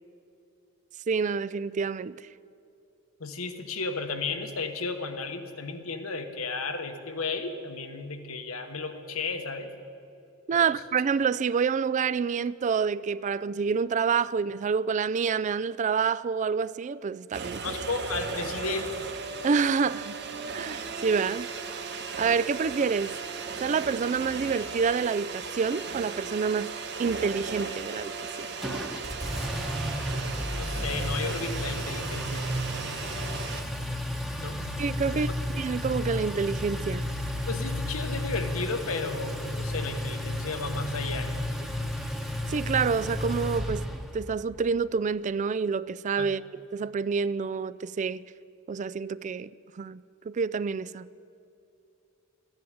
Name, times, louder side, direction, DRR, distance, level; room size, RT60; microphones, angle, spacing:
voice 1, 1.1-2.2 10.5-17.7 19.4-20.2 20.5-21.5 22.2-23.1 23.6-26.7 27.0-28.1 34.8-35.3 35.6-37.0 42.5-43.9 44.1-46.4 46.7-48.2 48.7-50.0 50.3-51.1, right 5 dB, 35° right, 0.3 m, -27 dB
voice 2, 3.2-9.7 10.5-10.6 17.6-19.1 30.5-32.5 34.4-34.6 35.0-35.2 35.5-35.6 37.5-41.7 46.2-46.3, left 4 dB, 85° left, 1.3 m, -34 dB
sound 1, 17.3-33.6, right 4 dB, 55° right, 1.0 m, -36 dB
Engine, 28.6-44.3, left 1 dB, ahead, 0.9 m, -32 dB
14.5 x 10.5 x 9.3 m
head